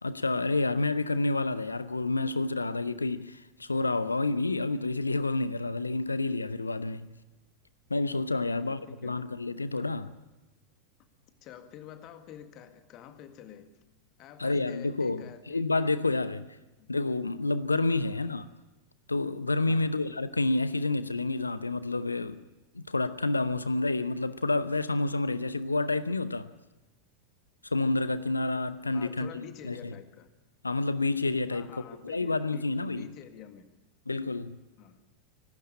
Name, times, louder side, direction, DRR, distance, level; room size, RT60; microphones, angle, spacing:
voice 1, 0.0-7.1 7.9-10.1 14.4-16.5 16.9-18.5 19.1-22.4 22.7-26.5 27.6-29.9 30.6-31.7 32.0-33.1 34.1-34.6, left 2 dB, 80° left, 0.7 m, -29 dB
voice 2, 8.4-9.2 9.8-9.9 11.4-13.8 14.2-15.6 16.8-16.9 19.7-20.0 28.9-30.3 31.5-32.7 32.9-33.7 34.8-35.0, left 9 dB, 35° left, 1.8 m, -48 dB
25.0 x 12.5 x 8.7 m
figure-of-eight pair, 90°, 0 cm